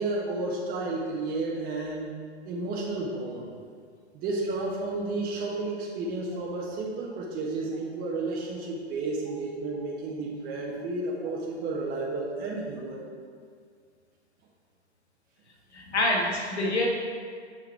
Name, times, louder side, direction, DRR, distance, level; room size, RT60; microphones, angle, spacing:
voice 1, 0.0-2.1 2.4-3.5 4.1-13.0, right 2 dB, 25° right, -3 dB, 1.2 m, -32 dB
voice 2, 15.7-16.9, left 1 dB, 75° left, -1 dB, 2.0 m, -26 dB
7.0 x 5.6 x 4.6 m, 2.1 s
figure-of-eight pair, 115°, 34 cm